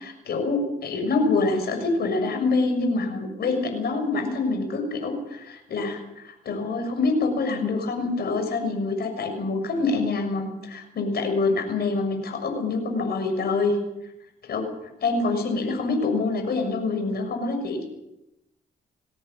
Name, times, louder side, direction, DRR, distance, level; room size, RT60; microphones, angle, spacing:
voice 1, 0.0-13.8 14.4-14.6 15.0-17.8, left 3 dB, 65° left, 4 dB, 6.6 m, -26 dB
22.0 x 17.0 x 8.6 m, 0.88 s
cardioid pair, 80°, 17 cm